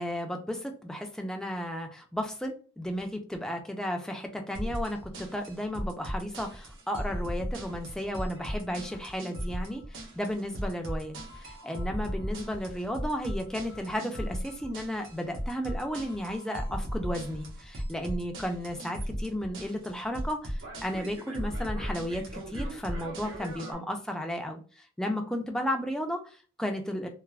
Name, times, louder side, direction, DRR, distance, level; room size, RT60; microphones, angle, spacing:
voice 1, 0.0-27.1, equal, 5° left, 3 dB, 0.3 m, -34 dB
sound 1, 4.5-23.7, equal, 75° right, 0.8 m, -37 dB
3.2 x 2.0 x 2.3 m, 0.37 s
head